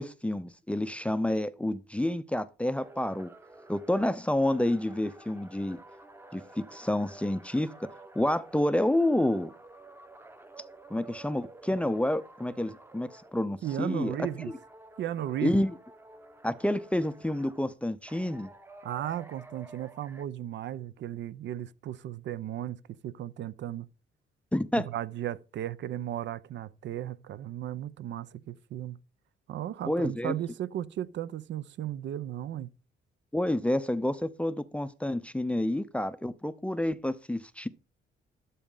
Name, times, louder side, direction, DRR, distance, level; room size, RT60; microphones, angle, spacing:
voice 1, 0.0-3.3 3.7-5.8 6.3-7.7 8.2-9.5 10.9-14.2 15.4-15.7 16.4-18.5 24.5-24.9 29.9-30.3 33.3-37.7, left 1 dB, 5° left, 0.5 m, -29 dB
sound 1, 2.8-13.4 13.6-17.6 18.1-20.2, right 2 dB, 10° right, 0.9 m, -51 dB
voice 2, 13.6-14.5 15.0-15.6 18.8-22.8 23.0-23.9 24.9-29.0 29.5-32.7, right 12 dB, 65° right, 0.5 m, -35 dB
12.0 x 4.2 x 3.8 m
cardioid pair, 90°, 20 cm